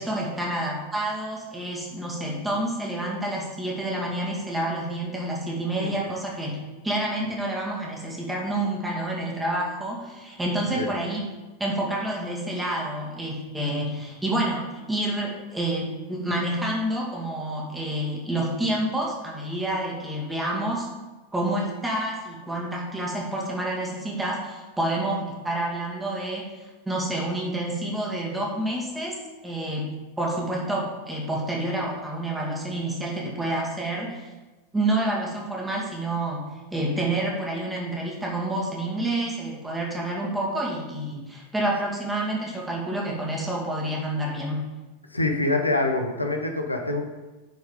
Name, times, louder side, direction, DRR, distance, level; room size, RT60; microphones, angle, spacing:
voice 1, 0.0-11.3 11.6-20.9 21.3-29.9 30.2-34.3 34.7-36.4 36.7-44.6, right 1 dB, 10° right, -2 dB, 2.2 m, -28 dB
voice 2, 45.1-47.0, left 2 dB, 85° left, 3 dB, 0.9 m, -25 dB
9.3 x 4.7 x 5.2 m, 1.2 s
figure-of-eight pair, 90°, 0 cm